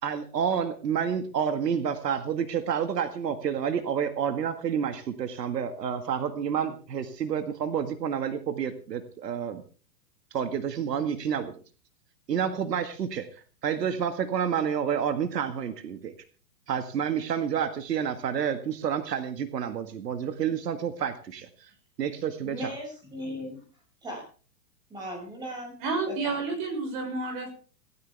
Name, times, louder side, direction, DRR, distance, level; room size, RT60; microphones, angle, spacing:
voice 1, 0.0-9.6 10.3-11.5 12.3-16.1 16.7-21.7 22.0-22.7, right 8 dB, 75° right, 9 dB, 2.0 m, -29 dB
voice 2, 22.4-23.6 24.0-24.2 24.9-25.7 26.1-26.4, equal, 10° right, 0 dB, 6.1 m, -37 dB
voice 3, 25.8-27.5, right 3 dB, 30° right, 4 dB, 6.3 m, -30 dB
17.5 x 17.5 x 3.5 m, 0.39 s
hypercardioid pair, 170°, 49 cm